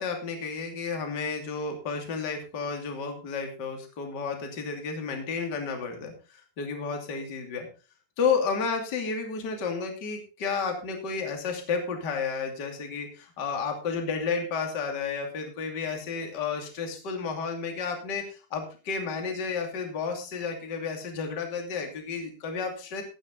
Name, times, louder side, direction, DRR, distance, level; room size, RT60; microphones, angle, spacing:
voice 1, 0.0-7.7 8.2-23.0, left 5 dB, 30° left, 4 dB, 2.2 m, -32 dB
15.0 x 9.9 x 4.0 m, 0.33 s
omnidirectional pair, 5.6 m